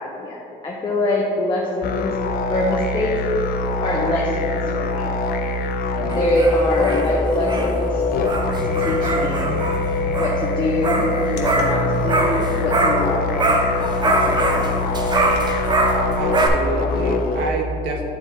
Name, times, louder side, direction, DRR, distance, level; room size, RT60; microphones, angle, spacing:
voice 1, 0.0-2.1 2.5-3.1 3.8-5.1 6.0-8.0 8.6-9.5 10.2-11.1 11.3-13.7 14.0-14.7, left 2 dB, 30° left, -3 dB, 0.9 m, -24 dB
sound 1, 1.8-17.5, left 3 dB, 60° left, 0.6 m, -24 dB
sound 2, 6.1-13.1 13.4-16.5, right 2 dB, 25° right, 0.7 m, -23 dB
sound 3, 9.0-15.5, left 2 dB, 85° left, 0.9 m, -39 dB
voice 2, 16.1-18.0, right 3 dB, 90° right, 1 dB, 1.0 m, -27 dB
9.3 x 4.0 x 4.0 m, 2.9 s
cardioid pair, 110°, 17 cm